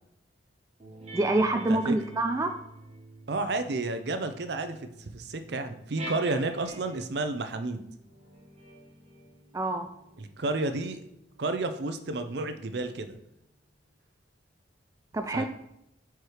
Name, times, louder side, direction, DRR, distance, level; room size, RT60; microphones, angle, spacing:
sound 1, 0.8-7.2 7.9-12.9, right 1 dB, 35° right, 1.4 m, -48 dB
voice 1, 1.1-2.5 9.5-9.9 15.1-15.5, right 2 dB, 15° right, 6 dB, 0.3 m, -26 dB
voice 2, 3.3-7.8 10.2-11.0 11.4-13.2 15.3-15.5, right 2 dB, 60° right, 8 dB, 0.6 m, -31 dB
4.6 x 4.6 x 4.9 m, 0.82 s
head